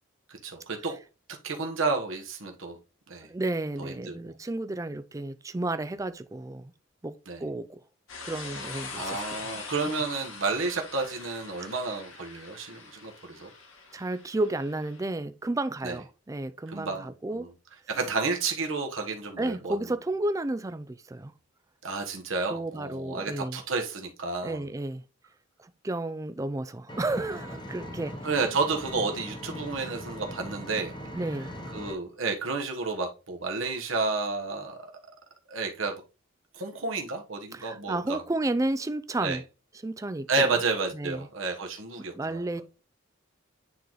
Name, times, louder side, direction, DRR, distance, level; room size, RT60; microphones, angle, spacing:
voice 1, 0.3-1.0 1.3-2.8 3.1-3.3 3.8-4.2 7.3-7.4 8.9-13.5 15.8-16.0 16.7-17.5 17.9-19.8 21.8-24.7 28.2-31.0 31.7-34.9 35.5-35.9 36.5-38.2 39.2-39.4 40.3-42.4, right 4 dB, 70° right, 1.2 m, -31 dB
voice 2, 3.2-6.7 7.0-7.8 8.2-9.2 13.9-17.5 19.4-21.3 22.5-23.6 24.4-25.0 25.6-28.1 31.1-31.5 37.5-39.4 39.8-40.6 40.9-41.3 42.1-42.6, right 2 dB, 15° right, 0.3 m, -32 dB
sound 1, 8.1-15.1, left 4 dB, 70° left, 1.7 m, -43 dB
Engine, 26.9-31.9, equal, 20° left, 0.9 m, -40 dB
9.4 x 3.9 x 3.1 m
head